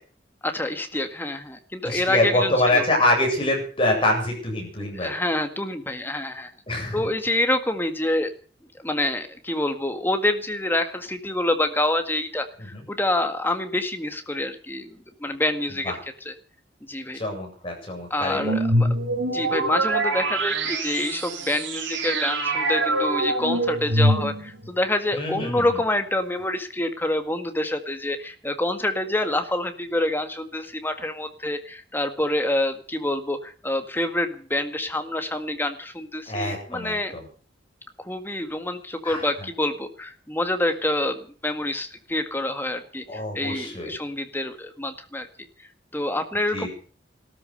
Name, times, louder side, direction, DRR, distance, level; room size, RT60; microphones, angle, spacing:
voice 1, 0.4-2.8 4.9-6.5 6.9-8.3 8.8-16.0 16.3-16.4 16.9-17.2 18.1-18.9 19.3-37.1 38.0-45.3 45.6-46.7, left 1 dB, 10° left, 7 dB, 1.8 m, -27 dB
voice 2, 1.8-5.1 6.7-7.0 12.6-12.8 15.8-15.9 17.1-18.6 25.1-25.6 36.3-37.2 39.0-39.3 43.1-43.9 46.5-46.7, left 1 dB, 30° left, 1 dB, 7.9 m, -25 dB
sound 1, 18.4-24.7, right 1 dB, 85° right, 3.7 m, -24 dB
16.0 x 13.5 x 6.6 m, 0.42 s
head